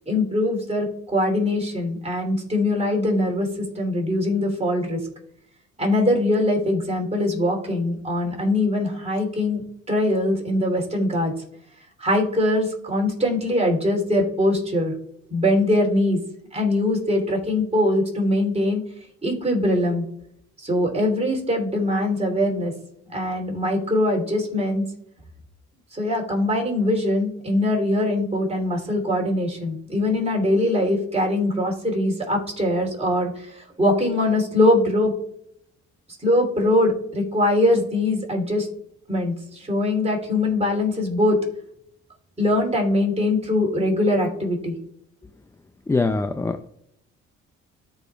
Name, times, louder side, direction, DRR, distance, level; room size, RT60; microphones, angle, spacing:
voice 1, 0.1-0.9 1.1-3.5 3.7-5.0 5.8-11.3 12.0-14.9 15.3-16.2 16.5-18.8 19.2-20.0 20.6-22.7 23.1-24.8 25.9-35.1 36.2-38.7 39.1-41.4 42.4-44.7, left 1 dB, 20° right, 0 dB, 3.0 m, -22 dB
voice 2, 45.9-46.7, left 3 dB, 10° left, 9 dB, 0.3 m, -23 dB
13.5 x 5.0 x 2.3 m, 0.74 s
cardioid pair, 90°, 30 cm